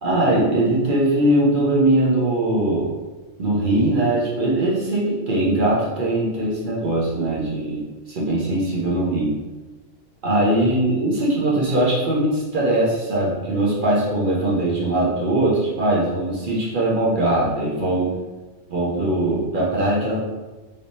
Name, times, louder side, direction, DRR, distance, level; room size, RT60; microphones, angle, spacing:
voice 1, 0.0-2.9 3.4-9.3 10.2-18.1 18.7-20.2, right 1 dB, 50° right, -5 dB, 0.8 m, -21 dB
3.4 x 3.1 x 2.7 m, 1.2 s
omnidirectional pair, 1.3 m